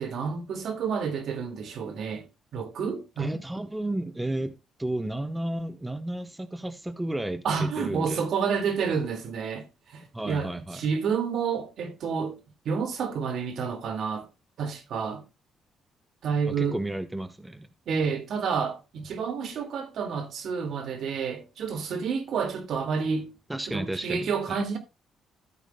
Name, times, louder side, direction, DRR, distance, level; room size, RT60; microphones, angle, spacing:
voice 1, 0.0-2.3 2.5-3.4 7.4-12.4 12.7-14.3 14.6-15.2 16.2-16.8 17.9-23.3 23.7-24.8, right 6 dB, 70° right, 2.0 m, -29 dB
voice 2, 3.2-4.5 4.8-8.2 10.1-10.8 16.6-17.7 23.5-24.6, right 1 dB, 10° right, 0.9 m, -32 dB
13.5 x 8.2 x 2.2 m
cardioid pair, 90°, 0 cm